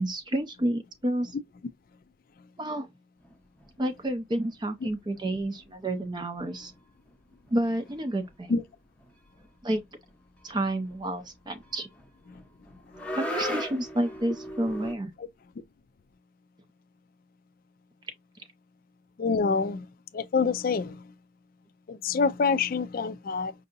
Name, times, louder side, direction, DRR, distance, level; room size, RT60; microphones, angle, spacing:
voice 1, 0.0-1.3 2.6-2.9 3.8-6.7 7.5-8.5 9.6-9.8 10.4-11.9 13.1-15.1, right 1 dB, 25° right, 0.5 m, -30 dB
sound 1, 3.2-4.1 4.4-5.3 5.5-5.7 5.9-6.1 6.3-14.9, equal, 5° left, 0.7 m, -39 dB
voice 2, 19.2-19.9 20.1-21.0 21.9-23.5, left 5 dB, 50° left, 0.4 m, -26 dB
5.4 x 2.7 x 2.5 m
head